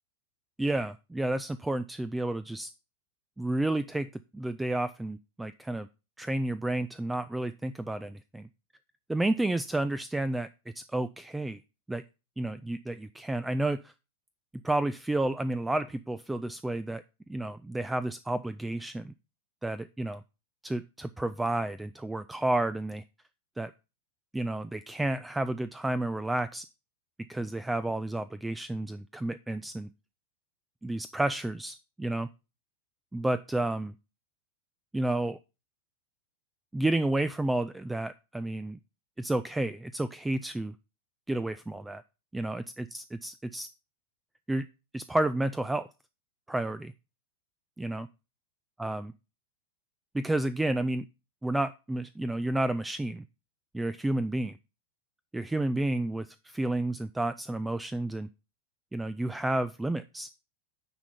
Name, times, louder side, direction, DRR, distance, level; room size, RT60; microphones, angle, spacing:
voice 1, 0.6-2.7 3.4-5.9 6.2-8.5 9.1-10.5 10.8-11.6 11.9-12.0 12.4-13.9 14.6-17.0 17.3-19.1 19.6-20.2 20.6-23.0 23.6-23.7 24.3-26.6 27.3-29.9 30.8-32.3 33.1-33.9 34.9-35.4 36.7-38.8 39.2-40.7 41.3-42.0 42.3-43.7 44.5-44.7 44.9-45.9 46.5-46.9 47.8-48.1 48.8-49.1 50.1-51.0 51.4-53.2 53.7-54.6 55.3-58.3 58.9-60.3, right 1 dB, 5° right, 14 dB, 0.3 m, -31 dB
9.6 x 3.7 x 5.5 m, 0.30 s
figure-of-eight pair, 90°, 0 cm